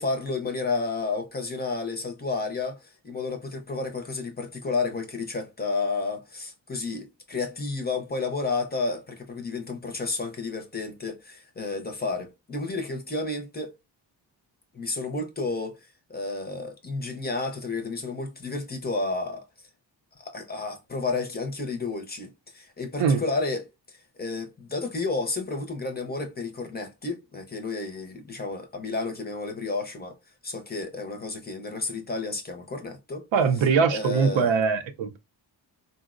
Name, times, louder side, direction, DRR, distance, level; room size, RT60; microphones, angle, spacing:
voice 1, 0.0-13.8 14.7-19.5 20.2-30.2 30.4-33.3 33.9-34.5, left 3 dB, 20° left, 0.5 m, -31 dB
voice 2, 33.3-35.2, right 5 dB, 90° right, 0.6 m, -22 dB
3.9 x 2.0 x 2.4 m
wide cardioid pair, 140°, 44 cm